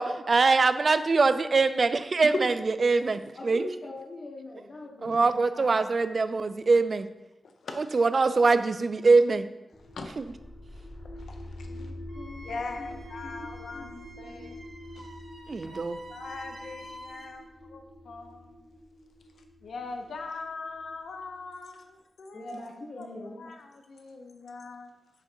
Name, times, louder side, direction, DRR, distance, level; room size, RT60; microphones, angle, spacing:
voice 1, 0.0-2.5 2.8-3.7 5.0-7.1 7.8-9.5 15.5-16.0, right 3 dB, 50° right, 12 dB, 0.3 m, -23 dB
voice 2, 3.3-5.8 11.6-14.0 14.2-14.5 22.3-23.5, left 2 dB, 55° left, 0 dB, 0.9 m, -43 dB
voice 3, 7.4-7.9 9.8-10.4 10.7-11.9 12.4-13.9 14.2-14.6 14.9-15.1 15.6-17.4 17.7-18.6 19.6-22.5 23.0-24.9, left 3 dB, 90° left, 5 dB, 0.5 m, -41 dB
sound 1, 9.7-21.5, left 1 dB, 5° left, 1.0 m, -46 dB
Wind instrument woodwind instrument, 12.1-17.4, right 1 dB, 75° right, 1.2 m, -48 dB
6.1 x 3.8 x 4.4 m, 0.97 s
wide cardioid pair, 100°, 0 cm